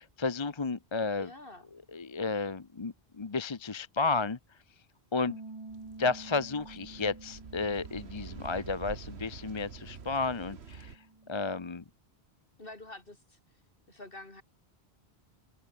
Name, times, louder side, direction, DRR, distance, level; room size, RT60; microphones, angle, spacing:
voice 1, 0.0-1.3 1.9-4.4 5.1-5.4 6.0-11.0 11.3-11.8, left 4 dB, 30° left, 0.8 m, -32 dB
voice 2, 1.2-1.7 12.6-13.4 13.9-14.4, left 2 dB, 60° left, 3.7 m, -47 dB
Bass guitar, 5.3-11.5, right 3 dB, 25° right, 1.2 m, -50 dB
sound 1, 5.7-11.0, right 6 dB, 85° right, 1.6 m, -47 dB
omnidirectional pair, 1.1 m